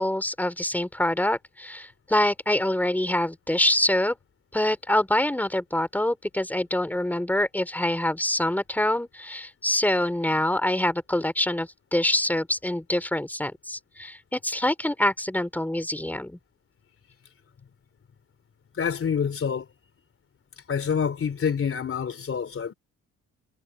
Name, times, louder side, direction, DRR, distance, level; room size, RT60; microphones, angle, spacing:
voice 1, 0.0-4.2 4.5-16.4, left 1 dB, 5° left, 4.0 m, -25 dB
voice 2, 18.8-19.7 20.7-22.7, left 7 dB, 45° left, 3.5 m, -27 dB
cardioid pair, 90°, 30 cm